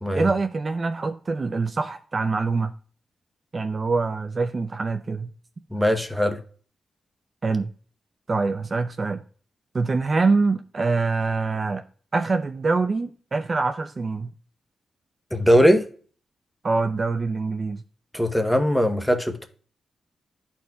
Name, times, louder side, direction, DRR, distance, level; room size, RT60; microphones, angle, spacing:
voice 1, 0.1-2.7 3.5-5.3 7.4-7.7 8.3-9.2 9.7-11.8 12.1-14.3 16.6-17.8, right 4 dB, 40° right, 0.5 m, -24 dB
voice 2, 5.7-6.4 15.3-15.8 18.1-19.5, equal, ahead, 0.9 m, -20 dB
12.5 x 4.4 x 2.3 m
cardioid pair, 75°, 0 cm